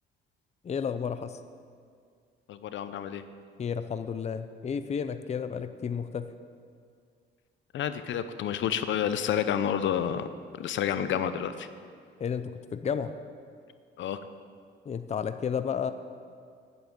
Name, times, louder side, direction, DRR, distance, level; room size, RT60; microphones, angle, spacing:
voice 1, 0.6-1.4 3.6-6.3 12.2-13.2 14.9-15.9, left 7 dB, 35° left, 10 dB, 0.5 m, -32 dB
voice 2, 2.5-3.2 7.7-11.7 14.0-14.2, left 9 dB, 70° left, 11 dB, 0.7 m, -29 dB
9.6 x 8.9 x 7.8 m, 2.1 s
cardioid pair, 90°, 20 cm